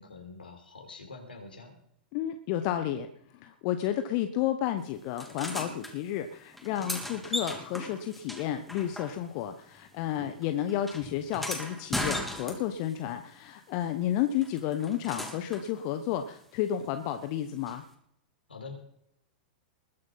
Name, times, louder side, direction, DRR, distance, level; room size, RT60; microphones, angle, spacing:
voice 1, 0.0-1.8 18.5-18.7, left 4 dB, 80° left, 4 dB, 4.1 m, -45 dB
voice 2, 2.1-3.1 3.3-17.8, left 11 dB, 45° left, 8 dB, 1.1 m, -31 dB
sound 1, 5.2-5.9 6.5-9.5 9.8-12.9 14.4-15.7 17.7-17.8, left 1 dB, ahead, 3.1 m, -37 dB
21.0 x 7.9 x 5.7 m, 0.71 s
figure-of-eight pair, 95°, 5 cm